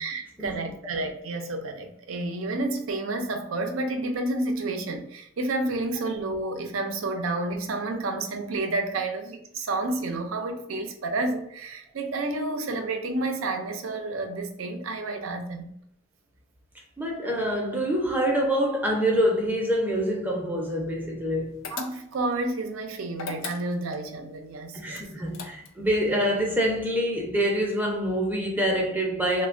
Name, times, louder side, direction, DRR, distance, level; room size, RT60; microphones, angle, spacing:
voice 1, 0.0-15.7 21.7-25.0, right 2 dB, 90° right, 0.5 m, -30 dB
voice 2, 17.0-21.6 24.7-29.5, equal, 10° right, 0.5 m, -26 dB
sound 1, 21.6-22.3 23.1-24.0 24.9-25.9, left 6 dB, 70° left, 0.4 m, -38 dB
3.1 x 2.2 x 2.4 m
head